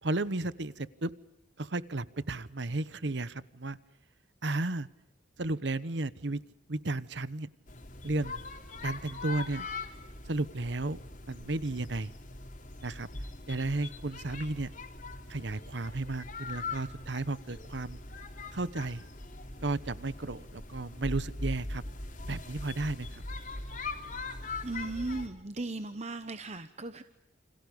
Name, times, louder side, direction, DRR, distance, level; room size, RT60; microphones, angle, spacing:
voice 1, 0.0-1.1 1.6-3.8 4.4-4.9 5.4-6.4 6.7-7.5 8.0-8.4 8.8-9.7 10.3-11.0 11.3-12.1 12.8-13.1 13.5-14.7 15.3-18.0 18.5-19.0 19.6-21.8 22.3-23.2, right 2 dB, 65° right, 16 dB, 1.1 m, -33 dB
sound 1, 7.7-25.3, left 3 dB, 45° left, 3.8 m, -41 dB
voice 2, 24.6-27.0, right 2 dB, 35° right, 10 dB, 1.0 m, -37 dB
29.5 x 27.0 x 5.3 m, 0.87 s
head